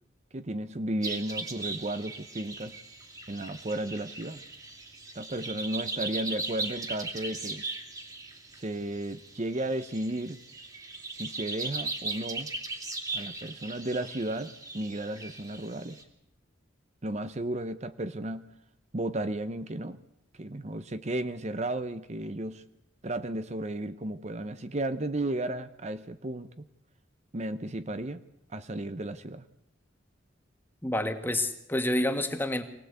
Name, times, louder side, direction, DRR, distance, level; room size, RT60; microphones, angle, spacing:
voice 1, 0.3-2.8 3.3-4.4 5.1-7.6 8.5-10.4 11.1-12.5 13.1-16.0 17.0-18.5 18.9-20.0 20.4-22.6 23.0-26.6 27.3-28.2 28.5-29.4, right 1 dB, 35° right, 11 dB, 0.8 m, -34 dB
sound 1, 1.0-16.0, right 3 dB, 20° right, 2.3 m, -38 dB
voice 2, 30.8-32.6, left 1 dB, 10° left, 7 dB, 1.7 m, -28 dB
24.5 x 18.5 x 8.2 m, 0.84 s
head